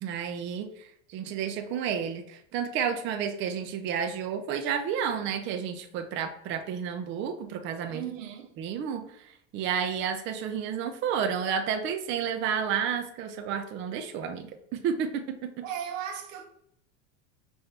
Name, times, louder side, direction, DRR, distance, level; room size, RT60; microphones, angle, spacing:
voice 1, 0.0-8.0 8.6-15.7, right 7 dB, 30° right, 0.5 m, -31 dB
voice 2, 7.9-8.5 15.6-16.4, right 9 dB, 90° right, 1.0 m, -36 dB
5.7 x 2.6 x 3.3 m
supercardioid pair, 130°, 38 cm